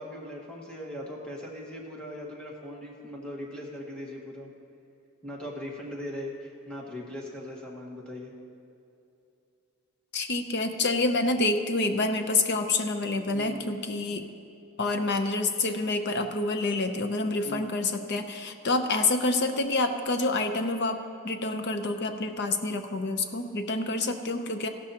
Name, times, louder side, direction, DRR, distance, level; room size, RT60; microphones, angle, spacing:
voice 1, 0.0-4.5 5.2-8.3 13.3-13.7 17.4-17.7, left 1 dB, 5° left, -2 dB, 1.5 m, -39 dB
voice 2, 10.1-14.3 14.8-24.7, left 2 dB, 50° left, 7 dB, 0.7 m, -27 dB
15.5 x 12.5 x 2.9 m, 2.6 s
head